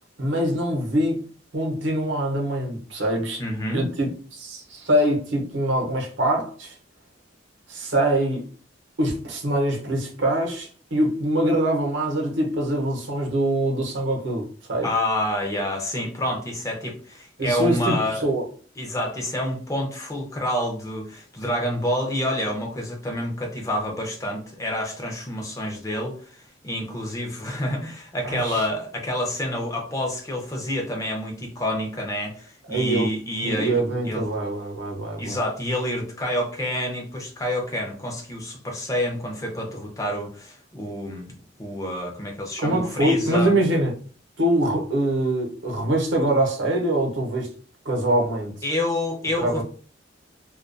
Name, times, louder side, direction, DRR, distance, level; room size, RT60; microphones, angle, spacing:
voice 1, 0.2-1.2 1.5-3.4 3.7-6.8 7.7-8.4 9.0-14.9 17.4-18.4 28.2-28.7 32.7-33.1 33.4-35.4 42.6-43.9 44.4-47.5 47.8-48.5 49.4-49.6, right 1 dB, 75° right, 0.7 m, -24 dB
voice 2, 3.4-3.9 14.8-18.3 18.8-34.2 35.2-41.3 41.6-43.5 48.6-49.6, left 1 dB, 15° left, 0.5 m, -28 dB
2.2 x 2.2 x 2.5 m
head